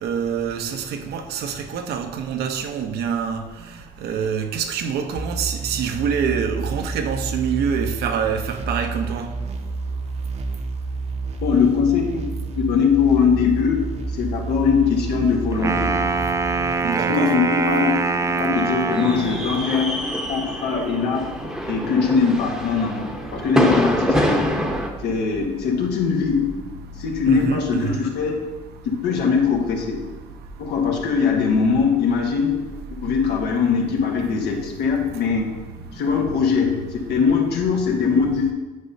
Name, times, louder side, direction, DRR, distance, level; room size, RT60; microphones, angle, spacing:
voice 1, 0.0-3.4 4.0-9.3 16.8-17.3 27.3-28.0, right 7 dB, 70° right, 6 dB, 0.7 m, -26 dB
sound 1, 5.2-16.7, right 3 dB, 40° right, 0.8 m, -30 dB
voice 2, 11.4-13.8 14.1-15.9 16.9-17.9 18.3-20.0 20.3-21.2 21.7-24.4 25.0-26.5 27.0-28.4 28.8-30.0 30.6-32.6 33.0-35.5 35.9-38.5, left 6 dB, 75° left, 1 dB, 1.4 m, -21 dB
Wind instrument woodwind instrument, 15.5-19.5, right 4 dB, 20° right, 0.4 m, -23 dB
sound 2, 18.9-24.9, equal, 5° right, 0.9 m, -25 dB
9.6 x 5.4 x 2.7 m, 1.2 s
cardioid pair, 110°, 17 cm